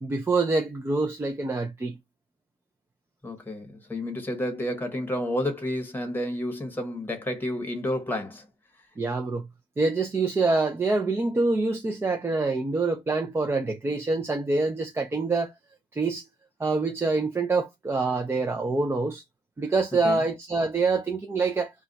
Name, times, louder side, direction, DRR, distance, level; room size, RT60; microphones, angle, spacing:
voice 1, 0.0-2.0 9.0-9.5 9.8-15.5 15.9-16.3 16.6-19.2 19.6-21.7, right 3 dB, 15° right, 0.4 m, -26 dB
voice 2, 3.2-8.5 20.0-20.2, left 1 dB, 10° left, 1.0 m, -30 dB
2.4 x 2.2 x 3.8 m
cardioid pair, 110°, 17 cm